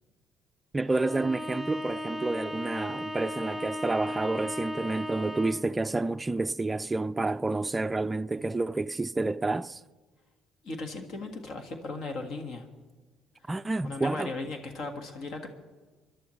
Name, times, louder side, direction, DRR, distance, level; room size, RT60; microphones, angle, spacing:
voice 1, 0.7-9.8 13.5-14.3, right 2 dB, 20° right, 0.3 m, -29 dB
Bowed string instrument, 0.9-5.7, equal, 5° left, 0.9 m, -36 dB
voice 2, 10.6-12.7 13.8-15.5, left 3 dB, 60° left, 1.6 m, -37 dB
29.0 x 11.0 x 3.2 m
cardioid pair, 95°, 0 cm